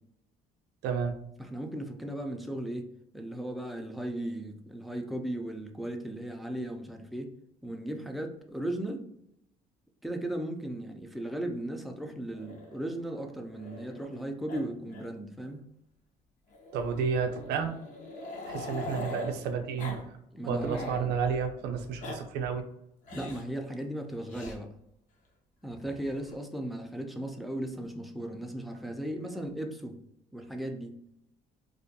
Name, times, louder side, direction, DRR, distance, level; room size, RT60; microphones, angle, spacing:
voice 1, 0.8-1.2 16.7-17.8 18.5-20.1 20.5-22.7, right 6 dB, 80° right, 6 dB, 0.4 m, -31 dB
voice 2, 1.4-2.9 3.1-7.3 7.6-9.1 10.0-15.6 20.3-21.1 23.1-24.7 25.6-30.0 30.3-30.9, right 1 dB, ahead, 3 dB, 0.3 m, -36 dB
Growling, 12.3-14.2 14.5-14.6 14.9-15.1 15.4-15.5 16.5-19.4 19.8-20.0 20.3-21.0 21.8-22.2 23.0-23.5 24.3-24.6 25.7-26.4, left 2 dB, 50° left, 0.6 m, -42 dB
2.4 x 2.1 x 2.6 m, 0.78 s
cardioid pair, 110°, 17 cm